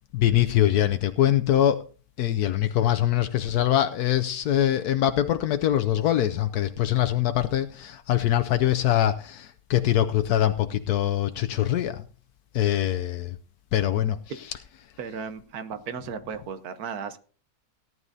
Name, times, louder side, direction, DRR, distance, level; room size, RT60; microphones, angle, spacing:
voice 1, 0.1-1.8 2.2-12.0 12.5-13.3 13.7-14.2, left 12 dB, 80° left, 8 dB, 1.2 m, -23 dB
voice 2, 15.0-17.2, right 6 dB, 75° right, 11 dB, 1.5 m, -35 dB
17.5 x 11.0 x 2.7 m, 0.38 s
omnidirectional pair, 1.6 m